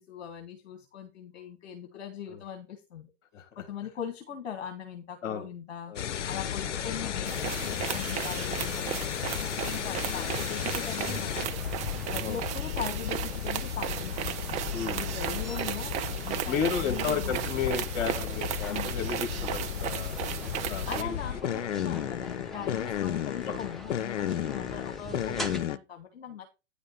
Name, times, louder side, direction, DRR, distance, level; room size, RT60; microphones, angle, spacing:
voice 1, 0.0-3.1 3.5-11.6 12.1-14.4 14.9-15.9 16.2-17.5 18.7-18.9 20.9-26.5, left 8 dB, 60° left, 6 dB, 1.5 m, -40 dB
sound 1, 6.0-25.8, left 10 dB, 75° left, 0.6 m, -34 dB
sound 2, 6.6-25.6, equal, ahead, 0.8 m, -45 dB
sound 3, 7.3-21.0, right 11 dB, 20° right, 0.5 m, -35 dB
voice 2, 14.7-15.1 16.5-20.2 20.7-21.2 22.6-22.7 23.4-23.5 24.5-24.6, left 7 dB, 40° left, 5 dB, 2.7 m, -33 dB
9.8 x 5.1 x 4.2 m, 0.28 s
figure-of-eight pair, 105°, 36 cm